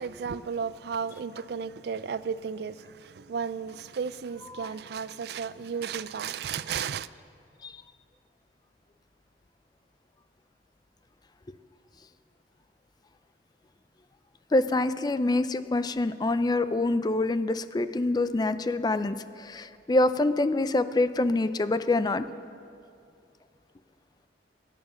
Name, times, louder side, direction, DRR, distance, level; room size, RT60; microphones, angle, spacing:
voice 1, 0.0-7.1, right 6 dB, 60° right, 0.4 m, -34 dB
voice 2, 14.5-22.3, left 2 dB, 25° left, 0.4 m, -26 dB
21.0 x 9.5 x 6.3 m
head